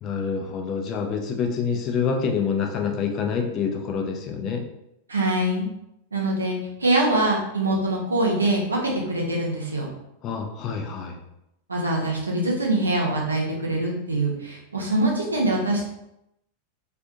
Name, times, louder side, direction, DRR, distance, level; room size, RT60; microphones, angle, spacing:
voice 1, 0.0-4.6 10.2-11.2, left 6 dB, 35° left, 2 dB, 0.4 m, -27 dB
voice 2, 5.1-5.7 6.1-9.9 11.7-15.8, right 1 dB, 75° right, -2 dB, 0.7 m, -24 dB
2.5 x 2.4 x 2.6 m, 0.84 s
figure-of-eight pair, 90°, 0 cm